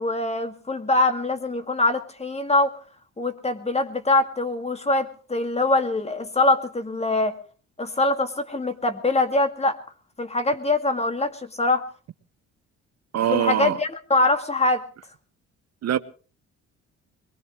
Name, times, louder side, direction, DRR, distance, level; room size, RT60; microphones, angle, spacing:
voice 1, 0.0-2.7 3.2-7.3 7.8-9.8 10.2-11.8 13.3-14.8, left 2 dB, 20° left, 2.1 m, -23 dB
voice 2, 13.1-13.8 15.8-16.0, right 11 dB, 60° right, 0.8 m, -23 dB
22.0 x 20.5 x 3.1 m
cardioid pair, 90°, 30 cm